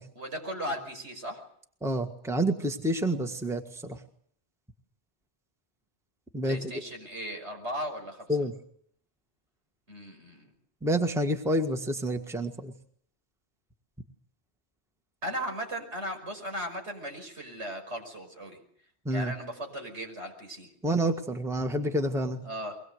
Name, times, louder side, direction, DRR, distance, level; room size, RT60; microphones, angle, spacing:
voice 1, 0.1-1.4 6.4-8.4 9.9-10.5 15.2-18.6 19.1-20.7 22.4-22.8, equal, 75° right, 4 dB, 6.0 m, -37 dB
voice 2, 1.8-4.0 6.3-6.7 8.3-8.5 10.8-12.7 19.0-19.3 20.8-22.4, right 1 dB, ahead, 6 dB, 1.6 m, -28 dB
23.5 x 20.5 x 8.0 m, 0.62 s
omnidirectional pair, 1.2 m